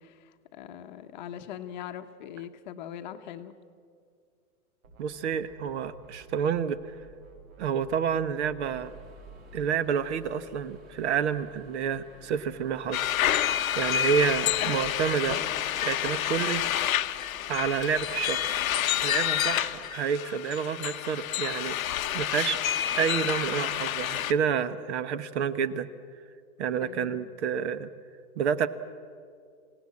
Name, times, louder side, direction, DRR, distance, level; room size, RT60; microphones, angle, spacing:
voice 1, 0.0-3.5 26.8-27.3, left 10 dB, 30° left, 7 dB, 1.0 m, -41 dB
sound 1, 4.8-6.5 6.8-9.9, right 3 dB, 70° right, 6.4 m, -51 dB
voice 2, 5.0-6.8 7.6-8.9 9.5-13.1 13.7-15.4 15.8-16.6 17.5-18.6 19.0-21.7 22.1-22.6 23.0-25.9 26.6-27.9 28.4-28.7, right 7 dB, 50° right, 14 dB, 1.1 m, -29 dB
sound 2, 8.7-20.0, right 2 dB, 20° right, 1.9 m, -54 dB
sound 3, 12.9-24.3, left 11 dB, 65° left, 0.9 m, -29 dB
26.5 x 17.0 x 8.5 m, 2.3 s
hypercardioid pair, 165°, 45 cm